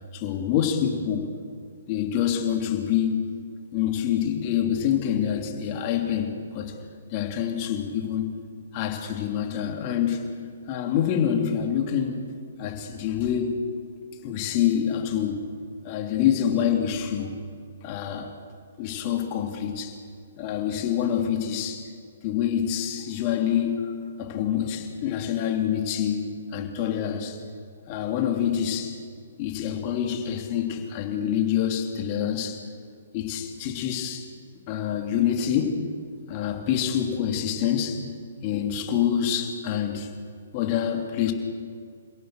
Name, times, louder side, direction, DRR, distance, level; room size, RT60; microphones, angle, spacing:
voice 1, 0.1-1.3 1.9-3.3 3.7-6.7 7.1-8.3 8.7-10.3 10.7-12.2 12.6-13.6 14.2-15.5 15.8-17.3 17.8-18.3 18.8-20.0 20.4-21.9 22.2-27.4 27.9-29.0 29.4-32.6 33.1-34.3 34.7-35.8 36.3-38.1 38.4-40.1 40.5-41.3, left 9 dB, 35° left, 3 dB, 3.1 m, -26 dB
27.5 x 17.0 x 6.6 m, 2.3 s
hypercardioid pair, 135°, 0 cm